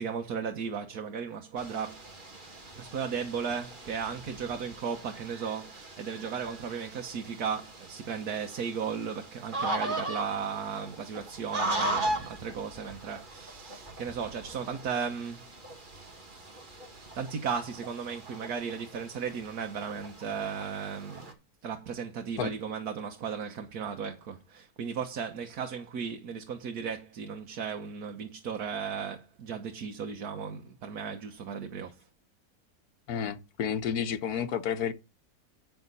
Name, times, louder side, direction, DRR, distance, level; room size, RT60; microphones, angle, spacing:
voice 1, 0.0-2.1 2.8-15.5 15.9-16.1 17.1-21.3 21.6-31.9, right 6 dB, 85° right, 1.6 m, -35 dB
sound 1, 1.6-21.3, right 2 dB, 35° right, 2.1 m, -39 dB
voice 2, 33.1-34.9, left 8 dB, 85° left, 1.5 m, -31 dB
9.3 x 6.9 x 4.0 m
omnidirectional pair, 1.6 m